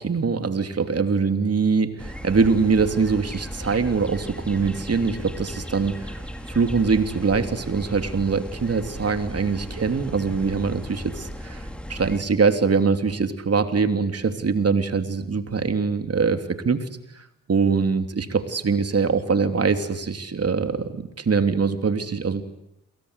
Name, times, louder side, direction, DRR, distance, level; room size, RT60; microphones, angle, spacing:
voice 1, 0.0-6.2 6.5-16.9 17.1-22.4, right 5 dB, 45° right, 8 dB, 3.2 m, -23 dB
sound 1, 2.0-12.2, equal, 5° left, 4.8 m, -36 dB
28.0 x 24.0 x 8.3 m, 0.81 s
supercardioid pair, 55°, 34 cm